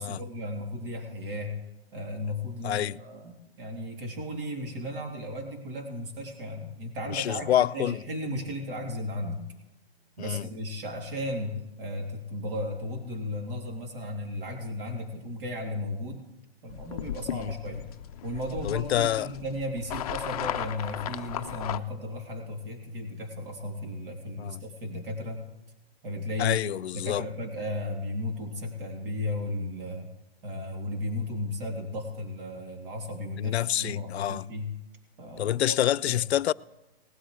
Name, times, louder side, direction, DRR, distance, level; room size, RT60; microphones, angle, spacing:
voice 1, 0.0-1.5 1.9-9.4 10.2-16.3 16.6-17.9 18.2-25.4 26.0-26.6 26.9-30.1 30.4-34.7 35.2-35.8 36.0-36.2, left 1 dB, 60° right, 3.2 m, -35 dB
voice 2, 2.6-3.0 7.1-8.0 10.2-10.5 17.3-17.5 18.6-19.3 24.4-24.6 26.4-27.2 33.4-34.5 35.4-36.5, left 12 dB, 85° left, 0.5 m, -27 dB
sound 1, 16.7-21.8, left 11 dB, 40° left, 0.5 m, -36 dB
19.5 x 12.5 x 3.3 m
hypercardioid pair, 150°, 31 cm